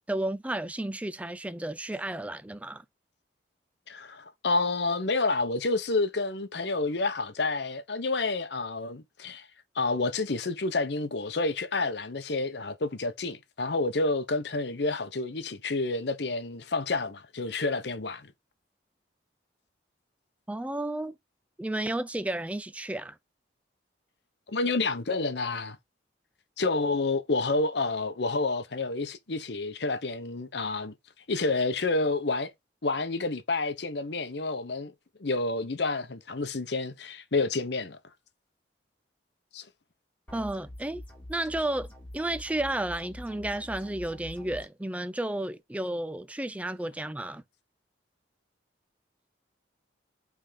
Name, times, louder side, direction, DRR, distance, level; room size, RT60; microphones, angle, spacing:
voice 1, 0.1-2.8 20.5-21.2 21.6-23.2 40.3-41.0 41.3-41.9 42.1-47.4, right 1 dB, 5° right, 0.4 m, -32 dB
voice 2, 3.9-9.5 9.8-18.3 24.5-25.8 26.6-30.9 31.3-32.5 32.8-34.9 35.2-38.0 39.5-39.6, left 3 dB, 65° left, 0.8 m, -29 dB
sound 1, 40.3-44.7, left 1 dB, 10° left, 2.0 m, -45 dB
5.6 x 3.6 x 5.0 m
head